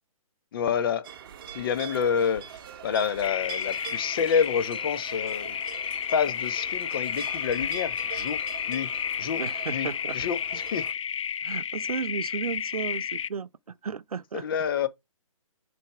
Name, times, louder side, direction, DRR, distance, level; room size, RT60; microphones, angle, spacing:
voice 1, 0.5-1.1 1.5-5.6 6.1-8.4 8.7-8.9 9.2-9.4 9.7-10.8 14.3-14.9, left 7 dB, 40° left, 1.0 m, -28 dB
sound 1, 1.0-10.9, right 9 dB, 40° right, 0.9 m, -43 dB
sound 2, 3.2-13.3, left 8 dB, 60° left, 0.4 m, -31 dB
voice 2, 9.4-10.2 11.4-13.5 13.8-14.5, right 6 dB, 85° right, 0.6 m, -34 dB
6.7 x 3.5 x 4.6 m
hypercardioid pair, 145°, 18 cm